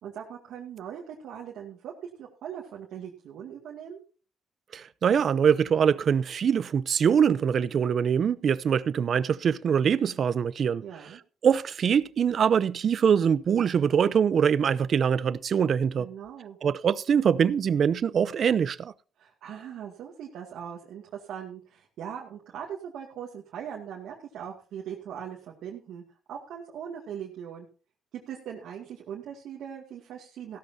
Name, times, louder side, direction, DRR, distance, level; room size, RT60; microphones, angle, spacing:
voice 1, 0.0-4.0 10.8-11.2 16.0-16.6 19.2-26.0 26.3-27.7 28.1-30.6, right 8 dB, 80° right, 2.2 m, -40 dB
voice 2, 4.7-10.8 11.4-16.1 16.6-18.9, right 7 dB, 55° right, 0.6 m, -23 dB
15.5 x 13.0 x 2.8 m
cardioid pair, 90°, 0 cm